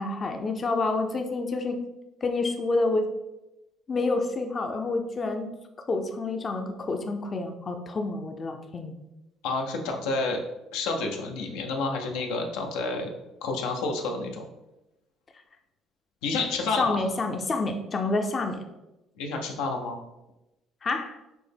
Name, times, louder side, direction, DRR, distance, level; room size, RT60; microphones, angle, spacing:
voice 1, 0.0-1.8 2.2-3.1 3.9-5.5 5.9-8.9 16.8-18.6 20.8-21.2, left 3 dB, 35° left, 5 dB, 0.5 m, -28 dB
voice 2, 9.4-10.4 10.7-13.1 13.4-14.4 16.2-17.0 19.2-20.0, left 3 dB, 85° left, 3 dB, 0.6 m, -29 dB
6.0 x 2.1 x 3.4 m, 0.97 s
supercardioid pair, 90°, 0 cm